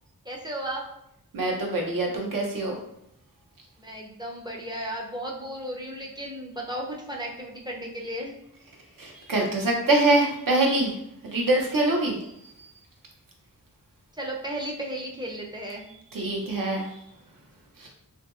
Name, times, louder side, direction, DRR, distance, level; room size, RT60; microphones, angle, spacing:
voice 1, 0.2-0.8 3.8-8.4 14.1-15.9, right 1 dB, 10° right, -2 dB, 0.5 m, -34 dB
voice 2, 1.3-2.8 9.0-10.9 11.2-12.2 16.1-16.9 17.8-17.9, right 2 dB, 65° right, 0 dB, 0.7 m, -24 dB
2.7 x 2.6 x 2.4 m, 0.78 s
wide cardioid pair, 85°, 36 cm